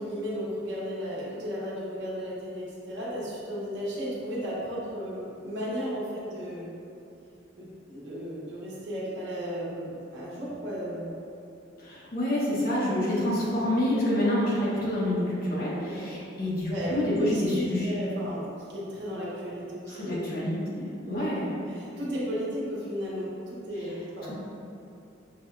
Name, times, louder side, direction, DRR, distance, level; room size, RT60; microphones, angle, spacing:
voice 1, 0.0-6.7 7.6-11.1 15.8-16.1 16.7-20.3 21.1-21.3 21.7-24.3, equal, 75° right, -7 dB, 1.2 m, -34 dB
voice 2, 11.8-17.9 19.9-21.5, left 1 dB, 55° left, -8 dB, 1.3 m, -28 dB
6.3 x 2.3 x 3.3 m, 2.7 s
head